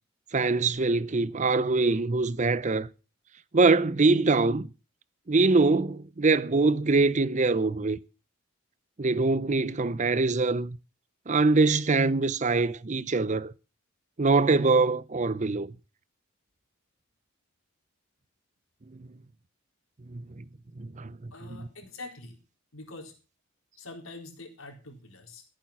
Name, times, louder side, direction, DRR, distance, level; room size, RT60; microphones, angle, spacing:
voice 1, 0.3-2.9 3.5-4.7 5.3-8.0 9.0-10.8 11.3-13.5 14.2-15.7 20.1-20.4 20.8-21.3, right 3 dB, 35° right, 0.6 m, -23 dB
voice 2, 21.3-22.4 22.7-23.1 23.8-25.4, left 2 dB, 80° left, 4.2 m, -44 dB
15.0 x 9.0 x 5.9 m
head